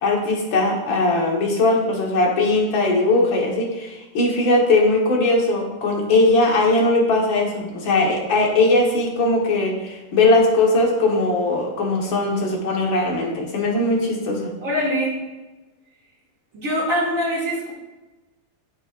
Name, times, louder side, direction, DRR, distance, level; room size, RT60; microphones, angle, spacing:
voice 1, 0.0-14.5, left 2 dB, 85° left, 0 dB, 2.2 m, -19 dB
voice 2, 14.6-15.1 16.5-17.7, equal, 45° right, -5 dB, 2.8 m, -23 dB
9.1 x 8.8 x 2.5 m, 1.1 s
omnidirectional pair, 2.1 m